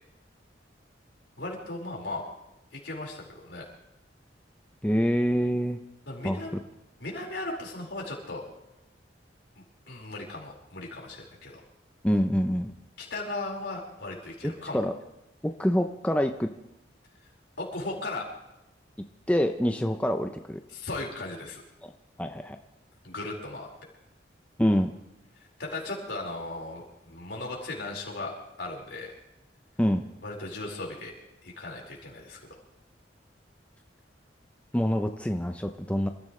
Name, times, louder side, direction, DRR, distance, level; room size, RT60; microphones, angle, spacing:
voice 1, 1.4-2.2 2.7-3.6 6.1-6.6 7.0-8.4 9.9-11.6 13.0-14.8 17.6-18.3 20.7-21.6 23.0-23.7 25.6-29.2 30.2-31.1 31.4-32.4, left 2 dB, 75° left, -2 dB, 4.8 m, -37 dB
voice 2, 4.8-5.8 6.2-6.4 12.0-12.7 14.4-14.9 15.4-16.5 19.3-20.6 21.8-21.9 22.2-22.6 24.6-24.9 29.8-30.0 34.7-36.1, equal, 5° left, 5 dB, 0.6 m, -26 dB
27.5 x 14.5 x 3.3 m, 0.91 s
head